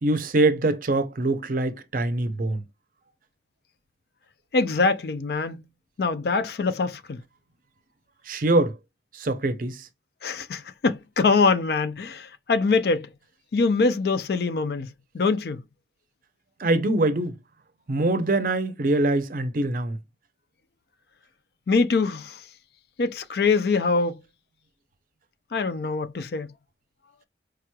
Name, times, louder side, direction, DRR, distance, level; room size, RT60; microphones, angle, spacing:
voice 1, 0.0-2.6 8.3-8.7 9.2-9.8 16.6-17.3 17.9-20.0, right 2 dB, 50° right, 0.5 m, -23 dB
voice 2, 4.5-5.6 6.0-7.2 10.2-13.1 13.5-15.6 21.7-22.4 23.0-24.2 25.5-26.5, left 4 dB, 55° left, 0.4 m, -24 dB
4.7 x 3.0 x 2.2 m
head